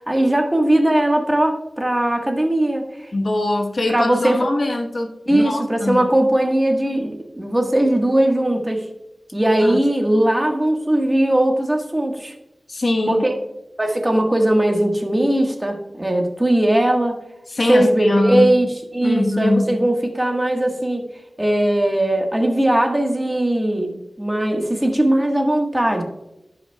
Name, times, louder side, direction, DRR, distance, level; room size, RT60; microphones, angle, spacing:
voice 1, 0.1-3.1 3.9-4.5 5.3-8.8 9.3-12.3 13.1-13.3 13.8-17.2 17.7-21.0 21.4-26.0, right 1 dB, 20° right, 2 dB, 1.4 m, -19 dB
voice 2, 3.1-6.1 9.6-9.8 12.7-13.2 17.5-18.5 19.0-19.8, left 2 dB, 60° left, 3 dB, 1.1 m, -22 dB
16.0 x 5.7 x 2.3 m, 0.91 s
wide cardioid pair, 75°, 0 cm